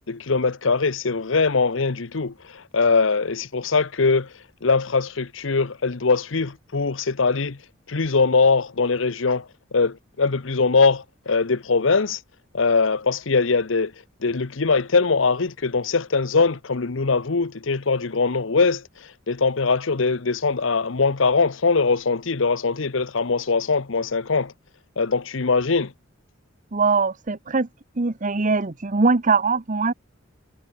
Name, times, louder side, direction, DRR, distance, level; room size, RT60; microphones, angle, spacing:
voice 1, 0.1-4.3 4.6-7.6 7.9-12.2 12.5-13.9 14.2-18.8 19.3-24.5 25.0-25.9, left 4 dB, 70° left, 0.9 m, -21 dB
voice 2, 26.7-27.7 28.0-29.9, right 4 dB, 40° right, 0.9 m, -21 dB
head